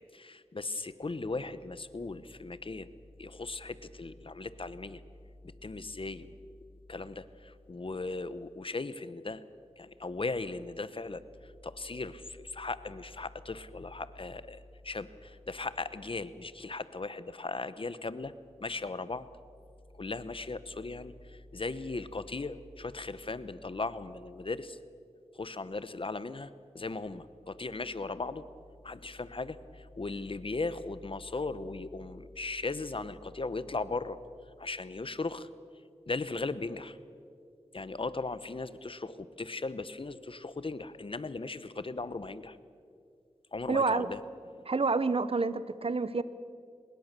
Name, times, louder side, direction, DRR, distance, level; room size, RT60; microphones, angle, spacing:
voice 1, 0.0-2.9 3.2-5.0 5.4-6.4 6.9-9.4 9.8-18.3 18.6-19.3 19.9-24.8 25.3-28.5 28.8-34.2 34.6-35.5 36.0-37.0 37.7-42.6 43.5-44.7, left 3 dB, 50° left, 15 dB, 1.0 m, -38 dB
voice 2, 43.7-44.1 44.7-46.2, right 4 dB, 55° right, 15 dB, 1.0 m, -28 dB
23.5 x 21.0 x 6.8 m, 2.3 s
wide cardioid pair, 55°, 12 cm